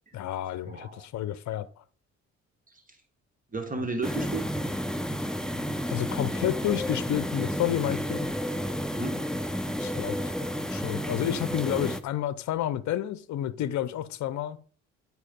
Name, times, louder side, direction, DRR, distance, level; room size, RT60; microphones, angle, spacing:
voice 1, 0.1-1.8 5.9-8.3 9.8-10.2 10.7-14.6, left 11 dB, 70° left, 0.7 m, -30 dB
voice 2, 0.6-1.1 2.7-3.0 3.5-4.5 5.9-6.0 9.0-9.9 10.2-10.3, right 3 dB, 25° right, 1.5 m, -35 dB
sound 1, 4.0-12.0, equal, ahead, 0.6 m, -31 dB
9.7 x 4.8 x 5.2 m
cardioid pair, 90°, 30 cm